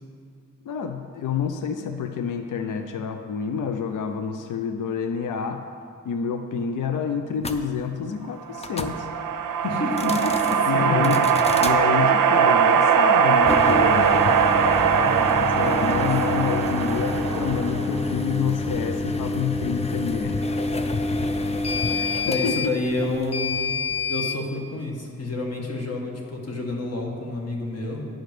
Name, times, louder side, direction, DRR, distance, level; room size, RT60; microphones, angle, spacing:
voice 1, 0.6-5.7 6.0-9.1 10.7-11.3 11.6-14.3 15.2-20.6 21.9-22.1 22.4-22.5, left 7 dB, 75° left, 6 dB, 0.5 m, -28 dB
sound 1, 7.4-7.6 8.6-9.0 9.9-10.6 11.0-11.8 13.4-24.4, left 3 dB, 20° left, 0.4 m, -28 dB
sound 2, 8.5-18.1, right 7 dB, 90° right, 0.6 m, -21 dB
voice 2, 9.6-11.2 21.8-21.9 22.2-23.7 24.1-28.1, left 2 dB, 50° left, 0 dB, 1.5 m, -29 dB
10.0 x 5.1 x 6.0 m, 2.3 s
wide cardioid pair, 135°, 31 cm